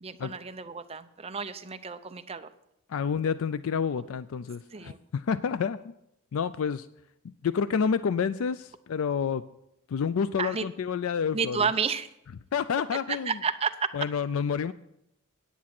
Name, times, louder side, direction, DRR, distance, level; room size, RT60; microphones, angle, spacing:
voice 1, 0.0-2.5 4.7-5.0 10.4-10.6 11.3-12.1 13.1-13.9, right 6 dB, 30° right, 9 dB, 0.6 m, -31 dB
voice 2, 2.9-5.9 6.3-6.9 7.4-9.4 9.9-11.7 12.5-13.3 13.9-14.7, left 6 dB, 70° left, 14 dB, 0.4 m, -29 dB
10.0 x 8.3 x 5.9 m, 0.81 s
head